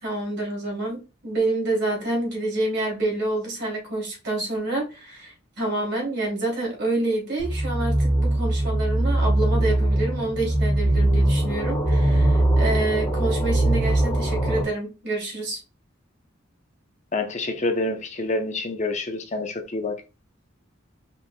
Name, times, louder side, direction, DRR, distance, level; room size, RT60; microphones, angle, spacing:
voice 1, 0.0-15.6, right 2 dB, 55° right, 2.7 m, -28 dB
sound 1, 7.4-14.6, right 1 dB, 15° left, 1.3 m, -21 dB
voice 2, 17.1-19.9, left 2 dB, 35° left, 0.7 m, -27 dB
5.3 x 4.5 x 2.2 m
head